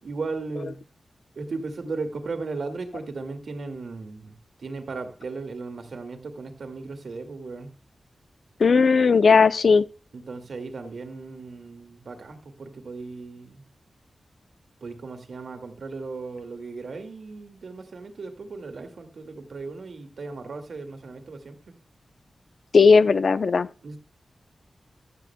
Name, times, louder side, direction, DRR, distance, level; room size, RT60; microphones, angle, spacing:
voice 1, 0.0-0.8 1.4-7.8 10.1-13.7 14.8-21.7 23.8-24.0, right 3 dB, 75° right, 2.0 m, -36 dB
voice 2, 8.6-9.9 22.7-23.7, left 5 dB, 70° left, 0.5 m, -17 dB
16.5 x 12.0 x 2.2 m
wide cardioid pair, 85°, 0 cm